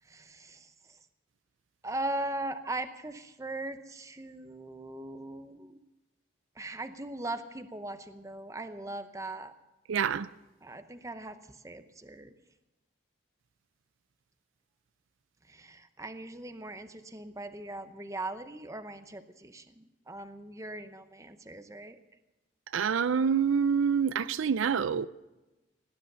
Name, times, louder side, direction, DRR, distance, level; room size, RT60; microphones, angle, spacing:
voice 1, 0.1-1.0 1.8-5.8 6.6-9.5 10.6-12.3 15.5-22.0, right 2 dB, 15° right, 0.7 m, -39 dB
voice 2, 9.9-10.3 22.7-25.1, right 6 dB, 70° right, 0.4 m, -26 dB
18.0 x 10.0 x 6.8 m
head